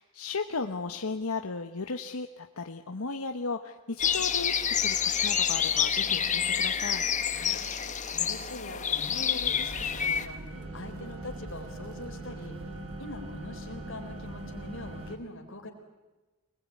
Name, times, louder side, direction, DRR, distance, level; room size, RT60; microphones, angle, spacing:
voice 1, 0.0-7.1, left 4 dB, 85° left, 5 dB, 1.2 m, -35 dB
sound 1, 4.0-10.3, left 8 dB, 35° left, 1.3 m, -28 dB
sound 2, 6.0-7.0 10.5-15.2, left 1 dB, 25° right, 3.8 m, -46 dB
voice 2, 7.3-7.6 8.1-10.4 10.7-12.6 13.0-15.7, left 1 dB, 60° left, 3 dB, 4.2 m, -43 dB
sound 3, 9.4-15.2, right 3 dB, 80° right, 2.1 m, -43 dB
25.5 x 20.5 x 9.6 m, 1.1 s
head